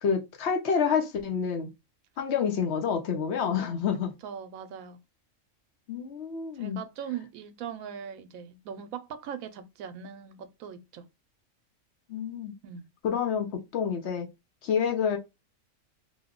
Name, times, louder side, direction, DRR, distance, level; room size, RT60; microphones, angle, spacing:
voice 1, 0.0-1.7 2.2-4.1 5.9-6.8 12.1-12.5 13.0-14.3 14.6-15.2, left 7 dB, 60° left, 0.9 m, -28 dB
voice 2, 4.2-5.0 6.5-11.1 12.6-12.9, right 8 dB, 85° right, 1.0 m, -40 dB
2.9 x 2.1 x 3.5 m
omnidirectional pair, 1.4 m